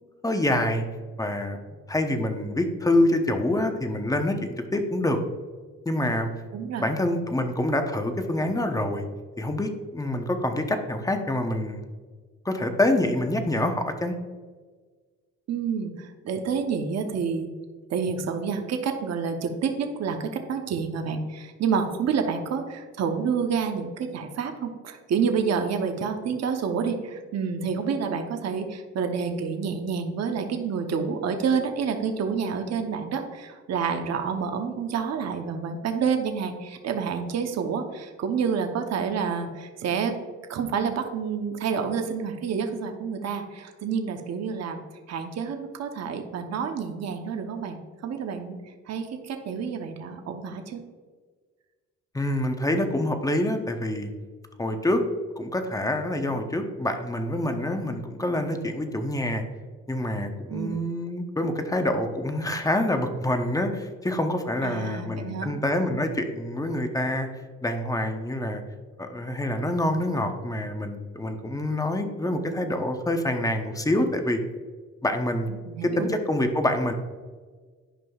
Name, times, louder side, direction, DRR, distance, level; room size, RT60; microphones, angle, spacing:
voice 1, 0.2-0.8 1.2-1.6 1.9-5.2 5.9-6.3 6.8-9.0 9.4-11.8 12.4-14.1 52.1-54.1 54.6-55.0 55.4-59.4 59.9-67.3 67.6-68.6 69.0-74.4 75.0-75.5 75.8-76.9, left 1 dB, 10° left, 6 dB, 0.8 m, -26 dB
voice 2, 6.5-6.9 15.5-17.5 17.9-40.1 40.5-44.8 45.1-48.6 48.9-50.8 60.5-60.8 64.6-65.5 75.5-76.1, right 6 dB, 60° right, 5 dB, 0.9 m, -28 dB
11.0 x 5.2 x 2.4 m, 1.5 s
cardioid pair, 90°, 30 cm